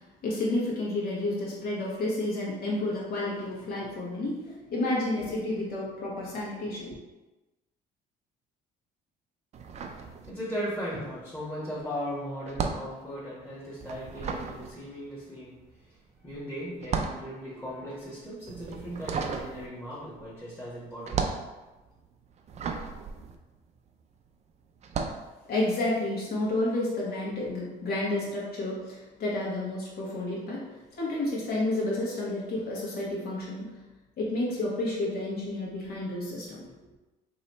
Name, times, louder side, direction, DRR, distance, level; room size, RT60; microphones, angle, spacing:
voice 1, 0.2-7.0 25.5-33.7 34.2-36.6, left 2 dB, 65° left, -5 dB, 1.5 m, -30 dB
sound 1, 9.5-10.8 11.0-24.2 24.8-25.3, right 5 dB, 40° right, 0.4 m, -35 dB
voice 2, 10.2-15.5 16.2-21.2, equal, 10° left, -9 dB, 1.2 m, -37 dB
3.1 x 2.8 x 4.2 m, 1.1 s
cardioid pair, 110°, 17 cm